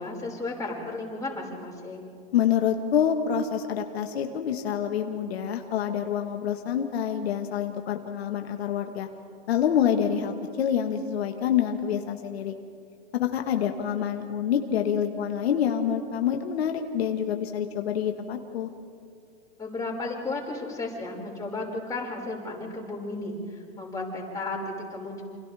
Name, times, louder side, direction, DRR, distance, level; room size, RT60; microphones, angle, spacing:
voice 1, 0.0-2.1 19.6-23.4 23.8-25.2, left 2 dB, 10° left, -3 dB, 5.4 m, -34 dB
voice 2, 2.3-9.1 9.5-12.5 13.1-18.7, left 9 dB, 85° left, 5 dB, 1.6 m, -27 dB
28.5 x 26.5 x 3.5 m, 2.3 s
hypercardioid pair, 125°, 31 cm